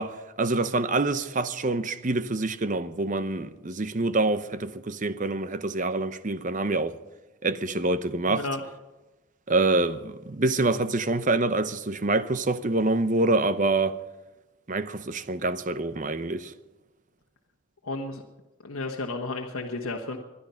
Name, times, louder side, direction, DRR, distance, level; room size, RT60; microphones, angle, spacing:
voice 1, 0.0-7.0 7.4-8.4 9.5-14.0 14.7-16.5, right 2 dB, 35° right, 0.8 m, -26 dB
voice 2, 8.3-8.6 17.8-18.2 18.6-20.2, left 2 dB, 85° left, 1.4 m, -32 dB
21.0 x 11.5 x 5.7 m
head